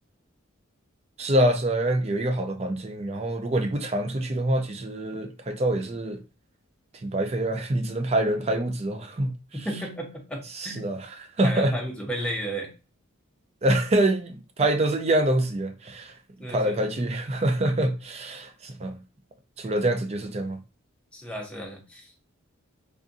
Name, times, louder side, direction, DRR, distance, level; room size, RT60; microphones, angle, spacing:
voice 1, 1.2-6.2 7.0-9.3 10.6-11.1 11.4-11.7 13.6-16.1 16.5-19.0 19.6-20.6, right 1 dB, 30° right, 0.4 m, -25 dB
voice 2, 9.5-10.8 11.4-12.7 16.4-17.0 19.6-19.7 21.1-22.2, equal, 5° left, 0.7 m, -34 dB
3.5 x 2.5 x 2.5 m
head